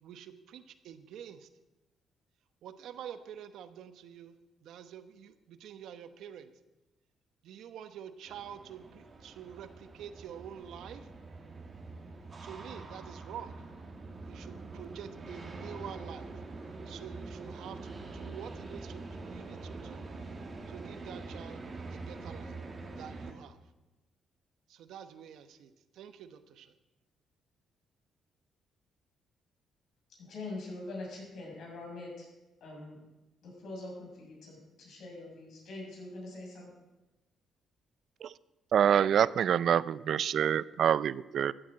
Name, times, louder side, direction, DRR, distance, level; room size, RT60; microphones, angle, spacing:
voice 1, 0.0-1.5 2.6-6.5 7.4-11.1 12.4-13.6 14.3-16.4 16.8-20.0 20.7-21.6 21.9-22.6 22.9-23.6 24.7-26.7, right 9 dB, 80° right, 10 dB, 1.0 m, -47 dB
sound 1, 8.3-23.3, right 3 dB, 35° right, 2.4 m, -45 dB
voice 2, 30.2-32.3 32.6-33.0 33.4-36.7, left 2 dB, 70° left, -2 dB, 6.6 m, -43 dB
voice 3, 38.7-41.5, right 9 dB, 65° right, 19 dB, 0.4 m, -26 dB
14.0 x 8.8 x 7.6 m, 1.0 s
cardioid pair, 90°, 0 cm